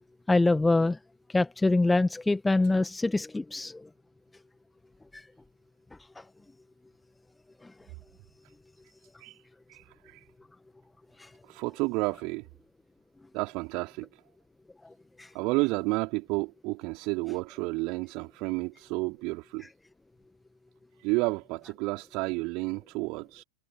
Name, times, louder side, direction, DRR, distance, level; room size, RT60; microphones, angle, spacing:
voice 1, 0.3-1.0 1.3-3.9 5.1-5.3 6.2-6.3 7.6-7.7 11.2-11.3 15.2-15.3, left 2 dB, 5° left, 1.7 m, -25 dB
voice 2, 9.7-10.3 11.5-12.5 13.3-14.1 15.3-19.7 21.0-23.4, right 26 dB, 40° right, 3.0 m, -31 dB
figure-of-eight pair, 90°, 0 cm